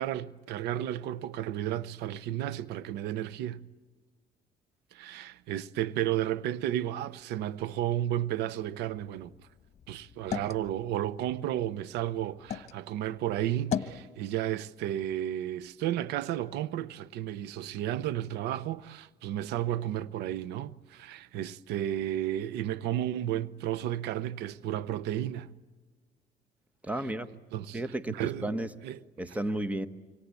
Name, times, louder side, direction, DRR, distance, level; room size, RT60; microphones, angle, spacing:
voice 1, 0.0-3.6 4.9-9.3 9.9-25.5 27.5-27.8 28.1-28.6 28.8-29.4, right 12 dB, 85° right, 0.7 m, -33 dB
sound 1, 8.9-12.8 13.2-14.0, left 8 dB, 40° left, 1.4 m, -38 dB
voice 2, 26.9-27.3 27.7-28.7 29.2-29.9, right 1 dB, 10° right, 1.1 m, -32 dB
26.5 x 25.0 x 8.3 m
cardioid pair, 110°, 17 cm